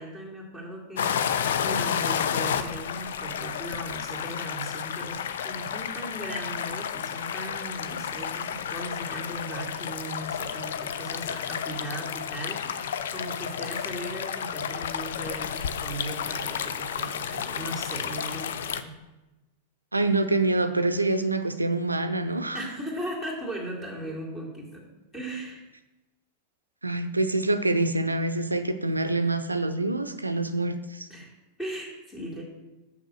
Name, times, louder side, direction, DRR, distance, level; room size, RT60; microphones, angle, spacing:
voice 1, 0.0-18.9 22.5-24.9 25.1-25.7 31.1-31.3 31.6-32.4, right 1 dB, 15° left, -3 dB, 2.4 m, -38 dB
sound 1, 1.0-18.8, left 8 dB, 60° left, 0.5 m, -31 dB
voice 2, 19.9-22.6 26.8-31.1, right 2 dB, 80° right, 10 dB, 0.5 m, -26 dB
6.6 x 6.4 x 6.3 m, 1.0 s
figure-of-eight pair, 90°, 0 cm